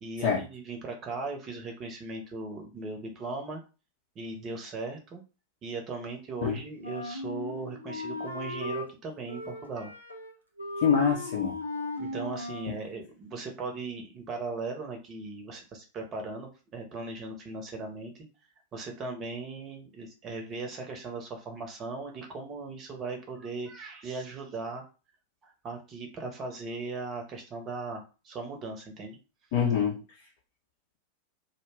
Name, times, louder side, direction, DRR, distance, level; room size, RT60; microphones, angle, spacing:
voice 1, 0.0-3.6 4.1-5.2 5.6-9.9 12.0-18.1 18.7-24.8 25.4-29.2, right 3 dB, 30° right, 3 dB, 0.8 m, -38 dB
Wind instrument woodwind instrument, 6.8-8.9 9.3-10.3 10.6-12.8, left 2 dB, 85° left, 0.6 m, -37 dB
voice 2, 10.8-11.6 29.5-30.0, left 7 dB, 50° left, -3 dB, 0.7 m, -25 dB
2.5 x 2.2 x 3.3 m, 0.32 s
figure-of-eight pair, 90°, 0 cm